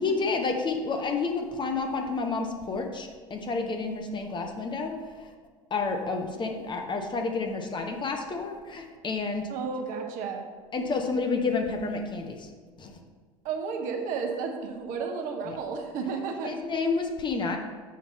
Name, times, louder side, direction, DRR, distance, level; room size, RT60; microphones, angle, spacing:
voice 1, 0.0-4.9 5.2-5.3 5.7-9.5 10.7-12.5 12.8-13.0 15.5-15.6 16.4-17.6, left 4 dB, 25° left, 3 dB, 0.9 m, -30 dB
voice 2, 9.5-10.4 13.4-16.5, right 5 dB, 50° right, 3 dB, 1.1 m, -32 dB
7.4 x 5.8 x 4.1 m, 1.5 s
figure-of-eight pair, 70°, 18 cm